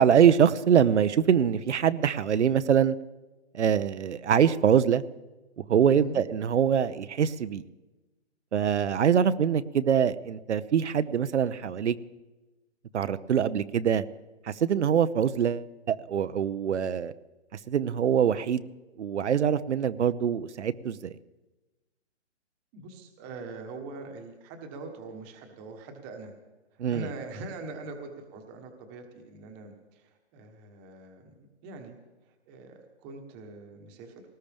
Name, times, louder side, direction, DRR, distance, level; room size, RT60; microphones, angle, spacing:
voice 1, 0.0-3.0 3.5-5.0 5.6-7.6 8.5-12.0 12.9-14.0 14.4-17.1 17.7-18.6 19.0-21.1 26.8-27.0, right 8 dB, 75° right, 13 dB, 0.8 m, -24 dB
voice 2, 5.8-6.2 22.7-26.3 26.7-31.3 31.6-32.0 32.2-34.2, right 3 dB, 15° right, 4 dB, 1.2 m, -43 dB
20.0 x 19.0 x 3.5 m, 1.1 s
hypercardioid pair, 170°, 36 cm